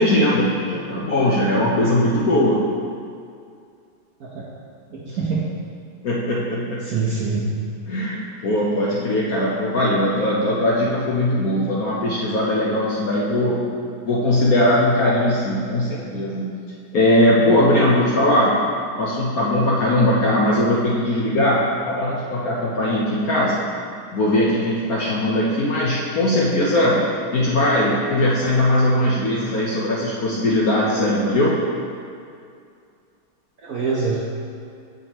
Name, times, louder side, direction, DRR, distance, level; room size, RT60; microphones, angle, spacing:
voice 1, 0.0-2.6 5.1-5.2 6.0-6.8 7.9-13.6 14.0-16.6 16.9-18.6 19.0-23.6 24.1-27.0 27.3-31.6, left 1 dB, 60° left, -6 dB, 1.0 m, -20 dB
voice 2, 4.9-5.4 6.9-7.5 33.6-34.2, right 4 dB, 60° right, -6 dB, 1.0 m, -24 dB
8.2 x 5.4 x 3.0 m, 2.3 s
omnidirectional pair, 2.3 m